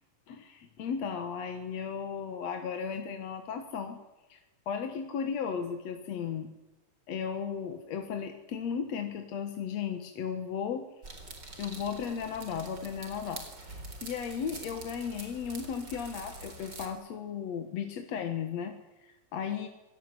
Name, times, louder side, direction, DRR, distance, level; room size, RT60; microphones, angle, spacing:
voice 1, 0.3-4.0 4.3-4.4 4.7-6.5 7.1-10.9 11.6-13.4 13.7-18.8 19.0-19.7, left 7 dB, 60° left, 6 dB, 2.6 m, -35 dB
sound 1, 11.0-16.9, right 2 dB, 35° right, 4.5 m, -45 dB
25.0 x 19.0 x 9.8 m, 1.1 s
omnidirectional pair, 3.5 m